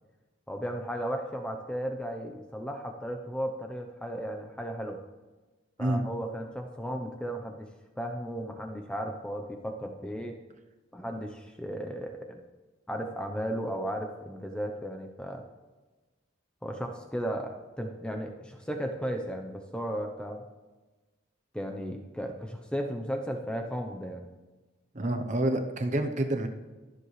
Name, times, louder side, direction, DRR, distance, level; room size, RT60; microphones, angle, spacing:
voice 1, 0.5-5.0 5.8-7.7 8.0-10.4 10.9-12.4 12.9-15.5 16.6-20.4 21.5-24.3, equal, 5° left, 3 dB, 0.7 m, -35 dB
voice 2, 24.9-26.5, right 1 dB, 35° right, 6 dB, 0.8 m, -28 dB
22.0 x 7.6 x 3.3 m, 1.2 s
head